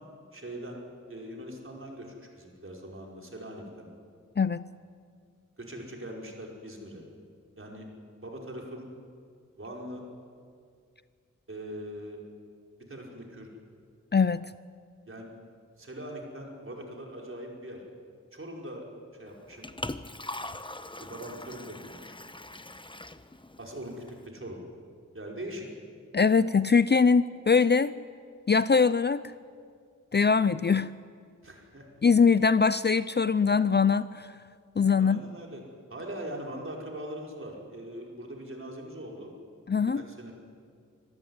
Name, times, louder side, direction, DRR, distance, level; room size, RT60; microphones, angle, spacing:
voice 1, 0.3-0.8 1.1-3.9 5.6-7.0 7.6-7.9 8.2-8.9 9.6-10.0 11.5-12.2 12.9-13.5 15.1-15.3 15.8-17.8 18.3-19.7 21.0-22.2 23.6-24.6 25.1-25.7 31.4-31.9 35.0-35.6 35.9-39.3 39.9-40.3, right 1 dB, 40° right, 0 dB, 5.2 m, -41 dB
voice 2, 14.1-14.5 26.1-27.9 28.5-29.2 30.1-30.9 32.0-34.3 34.8-35.2 39.7-40.0, left 5 dB, 35° left, 15 dB, 0.5 m, -22 dB
Liquid, 19.3-24.3, left 2 dB, 15° left, 1.0 m, -42 dB
25.5 x 14.0 x 9.6 m, 2.2 s
cardioid pair, 55°, 32 cm